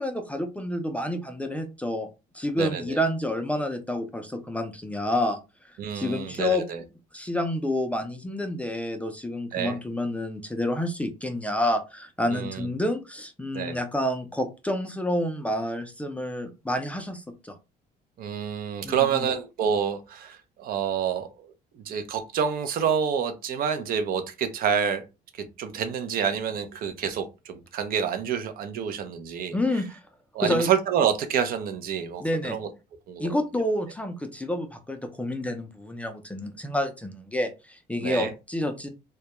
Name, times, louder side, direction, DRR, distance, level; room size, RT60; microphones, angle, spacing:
voice 1, 0.0-2.1 2.3-5.4 5.9-6.6 7.1-17.6 18.8-19.3 29.5-30.0 30.4-30.7 32.2-32.6 33.2-38.9, left 1 dB, 10° left, 6 dB, 0.4 m, -29 dB
voice 2, 2.6-3.0 5.8-6.8 9.5-9.8 12.3-12.7 13.5-13.8 18.2-25.0 25.4-29.6 30.3-32.7 33.1-33.3 38.0-38.3, right 7 dB, 60° right, 8 dB, 0.5 m, -28 dB
2.2 x 2.1 x 2.8 m, 0.27 s
cardioid pair, 110°, 17 cm